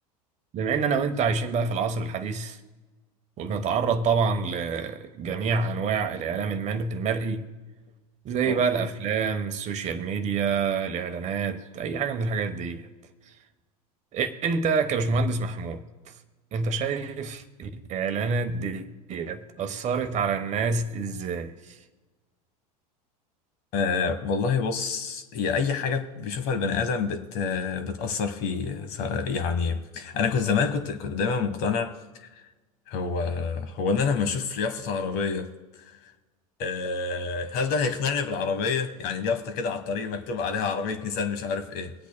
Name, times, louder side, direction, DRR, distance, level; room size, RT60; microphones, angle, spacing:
voice 1, 0.5-2.6 3.4-7.5 8.2-12.9 14.1-15.8 16.5-21.8, right 5 dB, 35° right, 1.0 m, -27 dB
voice 2, 23.7-32.4 32.9-35.5 36.6-41.9, left 5 dB, 50° left, 1.3 m, -27 dB
24.5 x 8.3 x 2.2 m
hypercardioid pair, 95°, 20 cm